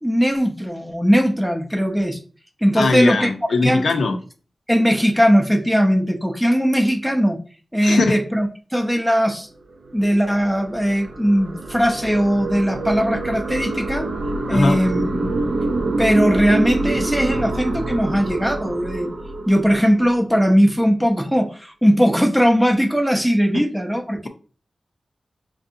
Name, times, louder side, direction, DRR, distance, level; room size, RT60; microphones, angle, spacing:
voice 1, 0.0-2.2 2.6-3.3 3.6-3.9 4.7-7.4 7.7-9.5 9.9-14.1 14.5-15.3 16.0-19.1 19.5-24.3, equal, 5° right, 4 dB, 0.5 m, -19 dB
voice 2, 2.8-4.2 7.8-8.2 14.5-14.8 23.5-23.6, left 3 dB, 90° left, 5 dB, 0.5 m, -20 dB
sound 1, 9.6-20.2, right 2 dB, 70° right, 0.4 m, -26 dB
4.5 x 2.6 x 2.5 m, 0.38 s
wide cardioid pair, 110°, 0 cm